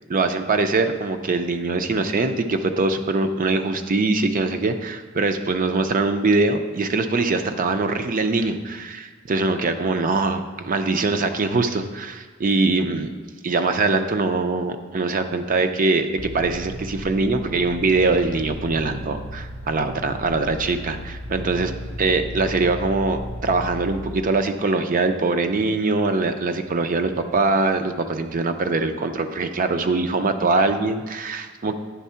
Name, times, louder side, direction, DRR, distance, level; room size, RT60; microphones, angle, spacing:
voice 1, 0.1-13.1 13.4-21.7 22.0-31.7, right 3 dB, 40° right, 8 dB, 0.5 m, -22 dB
sound 1, 16.2-24.2, equal, 65° right, 1.0 m, -35 dB
9.3 x 3.6 x 5.6 m, 1.3 s
head